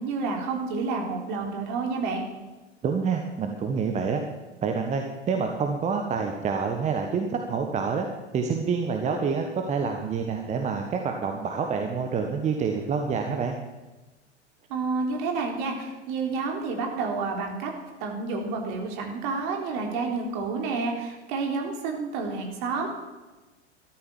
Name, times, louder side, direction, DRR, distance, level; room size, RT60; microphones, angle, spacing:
voice 1, 0.0-2.2 14.7-17.7 18.0-22.9, right 4 dB, 40° right, 2 dB, 3.9 m, -29 dB
voice 2, 2.8-4.2 4.6-8.1 8.3-13.5, right 5 dB, 20° right, 4 dB, 1.4 m, -27 dB
13.5 x 13.0 x 7.4 m, 1.2 s
figure-of-eight pair, 95°, 35 cm